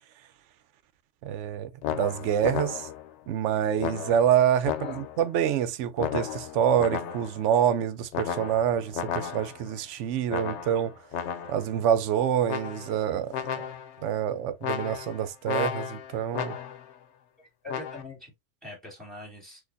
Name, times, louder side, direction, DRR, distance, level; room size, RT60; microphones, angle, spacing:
voice 1, 1.2-2.9 3.3-10.9 11.5-13.6 14.0-16.6, right 9 dB, 90° right, 0.9 m, -26 dB
sound 1, 1.8-3.1 3.8-5.3 6.0-7.5 8.1-9.7 10.3-11.7 12.5-13.1 13.3-14.0 14.6-16.9 17.7-18.0, left 9 dB, 80° left, 0.9 m, -34 dB
voice 2, 17.4-18.3 18.6-19.6, left 2 dB, ahead, 2.7 m, -43 dB
6.3 x 2.5 x 2.5 m
omnidirectional pair, 1.2 m